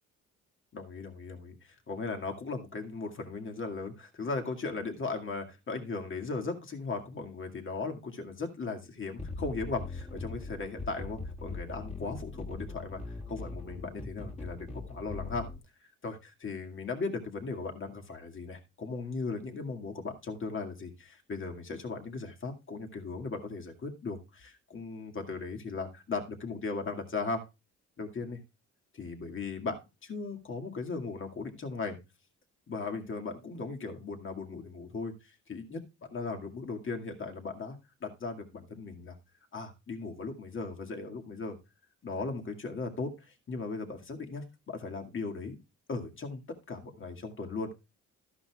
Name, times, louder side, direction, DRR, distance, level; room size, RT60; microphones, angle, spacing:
voice 1, 0.7-15.5 16.0-27.4 28.0-28.4 28.9-32.0 32.7-35.8 36.1-39.2 39.5-41.6 42.0-45.6 45.9-47.7, left 4 dB, 40° left, 3 dB, 2.1 m, -37 dB
sound 1, 9.2-15.6, left 3 dB, 20° left, 2.3 m, -41 dB
13.0 x 11.0 x 2.4 m, 0.26 s
cardioid pair, 90°, 30 cm